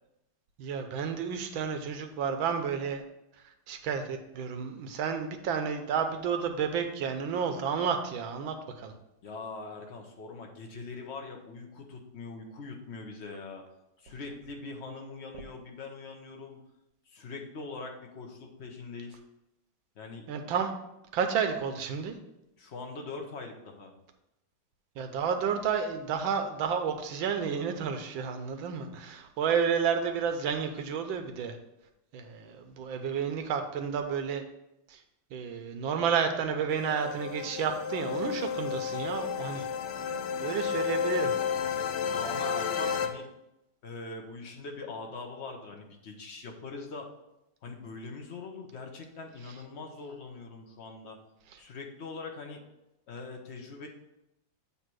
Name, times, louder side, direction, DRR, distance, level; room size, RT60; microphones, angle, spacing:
voice 1, 0.6-3.0 3.7-8.9 20.3-20.7 21.1-22.2 25.0-31.6 32.1-34.4 34.9-35.0 35.3-39.7 40.4-41.4, right 6 dB, 80° right, 6 dB, 1.5 m, -31 dB
voice 2, 9.2-13.6 14.0-16.6 17.1-19.2 19.9-20.3 22.6-23.9 42.1-43.2 43.8-47.1 47.6-51.2 51.6-52.6 53.1-53.9, left 3 dB, 45° left, 2 dB, 1.0 m, -42 dB
sound 1, 36.7-43.1, left 7 dB, 70° left, 1.1 m, -32 dB
8.5 x 2.9 x 6.1 m, 0.88 s
omnidirectional pair, 2.2 m